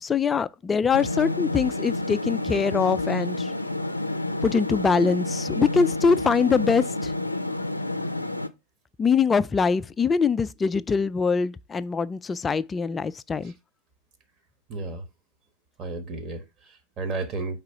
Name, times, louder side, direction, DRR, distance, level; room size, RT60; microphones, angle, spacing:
voice 1, 0.0-3.5 4.4-7.1 9.0-13.5, left 5 dB, 15° left, 0.3 m, -23 dB
sound 1, 0.9-8.5, left 2 dB, 85° left, 0.5 m, -29 dB
voice 2, 14.7-15.0 15.8-17.6, right 3 dB, 30° right, 1.2 m, -33 dB
4.8 x 3.6 x 5.6 m
figure-of-eight pair, 90°, 0 cm